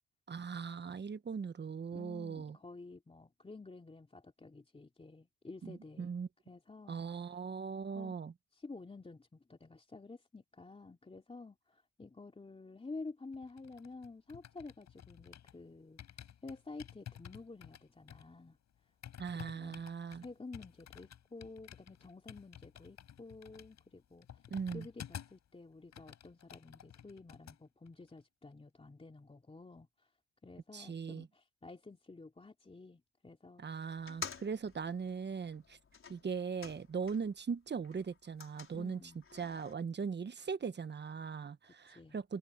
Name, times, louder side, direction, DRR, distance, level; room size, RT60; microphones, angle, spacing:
voice 1, 0.3-2.6 5.6-6.3 6.9-8.3 19.2-20.2 24.5-24.9 30.7-31.3 33.6-35.8 36.1-39.0 39.3-42.4, right 6 dB, 35° right, 1.3 m, -39 dB
voice 2, 1.9-6.1 6.4-7.0 7.9-8.1 8.5-18.6 19.3-19.8 20.2-24.4 24.7-30.1 30.4-33.6 38.7-39.2 41.6-42.2, left 3 dB, 20° left, 3.1 m, -51 dB
sound 1, 13.3-15.6 16.0-25.5 25.8-27.6 27.9-28.1, left 9 dB, 65° left, 7.3 m, -52 dB
sound 2, 34.0-37.4 37.7-39.7, left 6 dB, 45° left, 4.9 m, -50 dB
cardioid pair, 90°, 30 cm